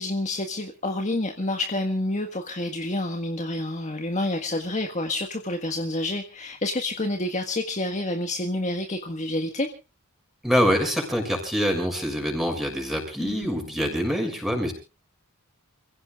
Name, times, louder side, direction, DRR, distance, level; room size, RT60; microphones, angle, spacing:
voice 1, 0.0-9.7 13.2-13.5, left 1 dB, 35° left, 4 dB, 1.6 m, -28 dB
voice 2, 10.4-14.7, equal, ahead, 3 dB, 6.5 m, -25 dB
29.0 x 16.5 x 2.5 m, 0.34 s
head